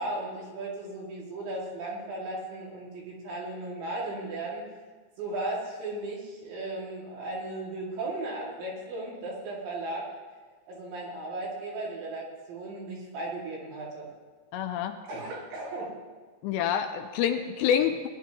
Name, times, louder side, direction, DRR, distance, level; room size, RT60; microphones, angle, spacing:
voice 1, 0.0-4.6 5.2-10.1 10.7-14.1 15.1-15.9, right 2 dB, 75° right, -4 dB, 4.7 m, -36 dB
voice 2, 14.5-15.0 16.4-18.1, left 9 dB, 80° left, 6 dB, 2.7 m, -27 dB
19.5 x 11.0 x 3.0 m, 1.4 s
omnidirectional pair, 5.2 m